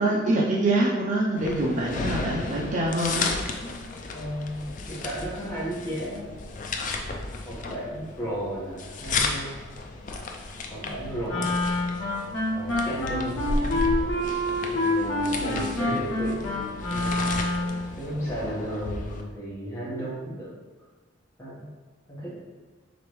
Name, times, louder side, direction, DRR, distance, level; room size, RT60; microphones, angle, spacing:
voice 1, 0.0-3.3 15.8-16.0, right 1 dB, 40° right, -4 dB, 0.5 m, -25 dB
sound 1, 1.4-19.2, left 3 dB, 40° left, 0.4 m, -33 dB
voice 2, 4.1-6.3 7.4-9.6 10.7-11.8 12.5-13.8 14.7-16.5 16.9-17.2 17.9-20.5 21.4-21.7 22.1-22.4, right 1 dB, 15° left, -8 dB, 1.3 m, -34 dB
Wind instrument woodwind instrument, 11.2-17.9, left 1 dB, 85° left, 1.1 m, -27 dB
5.0 x 3.4 x 3.1 m, 1.3 s
head